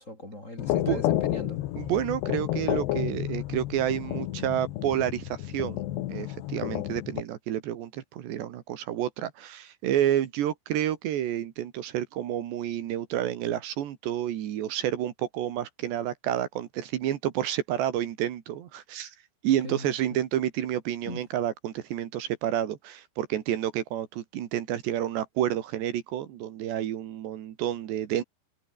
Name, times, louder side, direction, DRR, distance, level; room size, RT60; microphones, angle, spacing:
voice 1, 0.0-1.6 19.6-20.2 21.0-21.2, left 1 dB, 15° left, 4.4 m, -39 dB
sound 1, 0.6-7.2, left 15 dB, 75° left, 3.3 m, -31 dB
voice 2, 1.8-5.8 6.1-19.2 19.4-28.2, right 11 dB, 75° right, 3.8 m, -29 dB
omnidirectional pair, 5.2 m